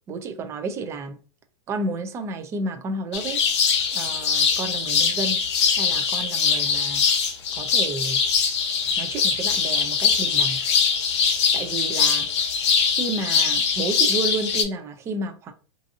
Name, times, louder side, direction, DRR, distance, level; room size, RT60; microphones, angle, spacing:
voice 1, 0.1-1.2 1.7-3.4 3.9-5.4 5.7-7.0 7.6-8.2 9.0-10.6 11.5-12.3 12.9-15.5, right 3 dB, 20° right, 0.3 m, -31 dB
sound 1, 3.1-14.6, left 6 dB, 75° left, 0.7 m, -22 dB
2.6 x 2.5 x 2.6 m
supercardioid pair, 155°, 15 cm